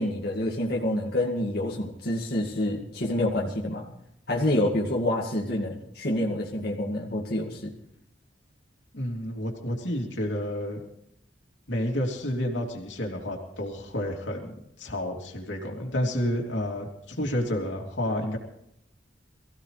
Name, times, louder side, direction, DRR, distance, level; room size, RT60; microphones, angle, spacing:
voice 1, 0.0-3.9 4.3-7.7, left 1 dB, 60° left, -3 dB, 2.1 m, -27 dB
voice 2, 8.9-10.8 11.7-18.4, left 1 dB, 85° left, 1 dB, 3.0 m, -30 dB
23.5 x 16.0 x 3.3 m, 0.76 s
head